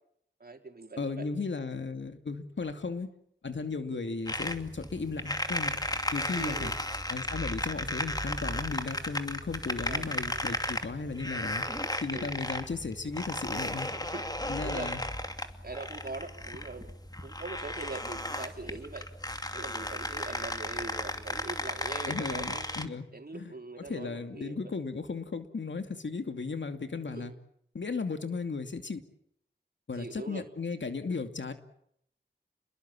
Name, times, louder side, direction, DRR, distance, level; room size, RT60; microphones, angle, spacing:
voice 1, 0.4-1.3 3.9-4.1 6.3-6.7 9.8-10.6 11.3-12.3 13.7-14.9 15.6-16.9 17.2-19.1 19.5-22.7 23.1-24.7 27.1-27.3 29.9-30.5, right 3 dB, 55° right, 4 dB, 4.5 m, -42 dB
voice 2, 1.0-3.1 3.4-5.8 6.1-6.7 7.1-11.6 12.0-13.9 14.5-15.0 22.1-23.0 23.3-23.5 23.9-27.3 27.7-29.0 29.9-31.5, left 4 dB, 80° left, 7 dB, 2.6 m, -35 dB
sound 1, 4.3-22.9, left 1 dB, 20° left, 2.7 m, -35 dB
29.5 x 21.5 x 7.5 m, 0.72 s
wide cardioid pair, 55°, 19 cm